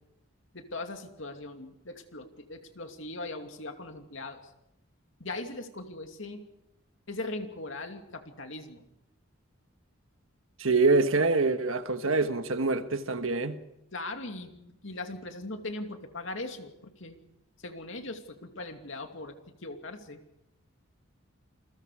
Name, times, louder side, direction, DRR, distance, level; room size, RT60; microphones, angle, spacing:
voice 1, 0.5-4.5 5.2-6.4 7.1-8.8 13.9-17.2 17.6-20.2, left 2 dB, 65° left, 2.6 m, -40 dB
voice 2, 10.6-13.6, right 3 dB, 80° right, 1.5 m, -25 dB
28.5 x 21.0 x 5.0 m
head